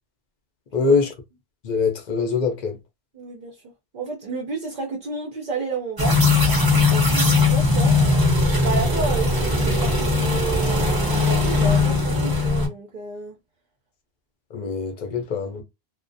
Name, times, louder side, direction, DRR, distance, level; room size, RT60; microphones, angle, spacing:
voice 1, 0.7-1.1 1.6-2.8 14.5-15.6, left 4 dB, 55° left, 0.6 m, -23 dB
voice 2, 3.1-3.6 3.9-6.2 6.7-7.9 8.6-13.4, right 4 dB, 55° right, 0.6 m, -31 dB
sound 1, 6.0-12.7, left 3 dB, 25° right, 0.8 m, -19 dB
2.3 x 2.1 x 2.5 m
omnidirectional pair, 1.1 m